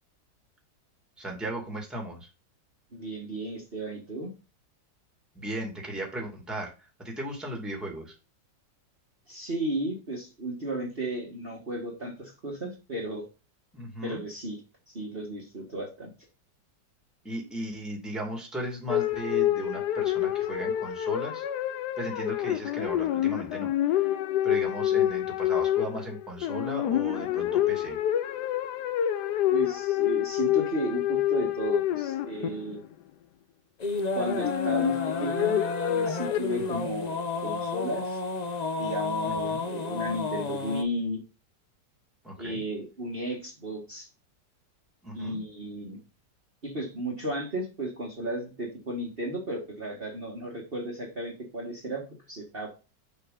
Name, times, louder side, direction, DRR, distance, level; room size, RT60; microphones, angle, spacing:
voice 1, 1.2-2.3 5.3-8.2 13.7-14.2 17.2-21.4 22.0-24.2 24.4-28.0 36.7-36.9 39.2-39.6 42.2-42.6 45.0-45.4, right 1 dB, ahead, 0 dB, 2.1 m, -36 dB
voice 2, 2.9-4.3 9.3-13.3 14.0-14.6 14.9-16.1 29.5-32.8 34.2-35.6 35.9-38.2 38.8-41.2 42.4-44.1 45.1-46.0 46.6-52.7, right 1 dB, 30° right, -3 dB, 1.9 m, -34 dB
sound 1, 18.9-32.9 34.3-36.7, left 12 dB, 75° left, 1.2 m, -27 dB
sound 2, 33.8-40.8, left 3 dB, 50° left, 0.5 m, -31 dB
6.7 x 5.3 x 3.9 m, 0.30 s
omnidirectional pair, 1.9 m